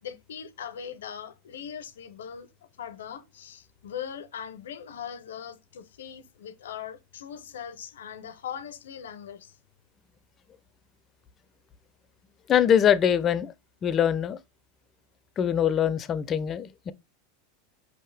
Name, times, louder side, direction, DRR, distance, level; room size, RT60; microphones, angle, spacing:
voice 1, 0.0-2.5 2.8-9.6, left 8 dB, 90° left, 0.5 m, -40 dB
voice 2, 12.5-13.5 13.8-14.4 15.4-16.9, left 9 dB, 30° left, 0.4 m, -23 dB
5.3 x 2.8 x 3.2 m
supercardioid pair, 120°, 0 cm